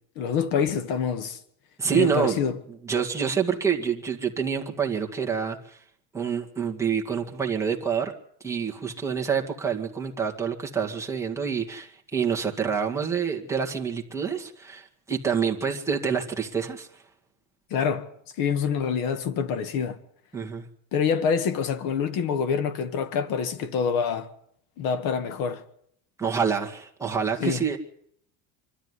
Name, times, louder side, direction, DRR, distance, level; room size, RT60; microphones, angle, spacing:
voice 1, 0.2-1.4 1.9-2.6 17.7-18.1 18.4-20.0 20.9-24.3 24.8-25.6 27.4-27.6, left 6 dB, 55° left, 2.0 m, -26 dB
voice 2, 1.8-2.4 2.8-5.8 6.1-8.1 8.4-16.9 20.3-20.6 26.2-27.8, right 6 dB, 5° right, 2.0 m, -27 dB
24.5 x 13.0 x 9.8 m
cardioid pair, 170°, 39 cm